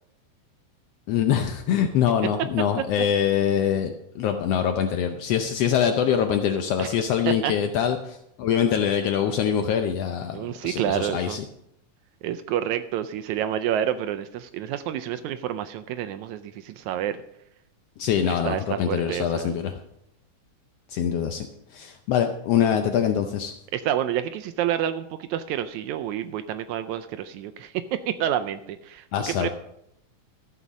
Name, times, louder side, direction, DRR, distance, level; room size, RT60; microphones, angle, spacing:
voice 1, 1.1-11.4 18.0-19.7 20.9-21.5 21.7-23.5 29.1-29.5, left 8 dB, 85° left, 6 dB, 1.3 m, -24 dB
voice 2, 10.3-11.4 12.2-17.2 18.2-19.6 23.7-29.5, right 10 dB, 80° right, 10 dB, 1.8 m, -29 dB
13.5 x 7.0 x 6.1 m, 0.77 s
omnidirectional pair, 3.7 m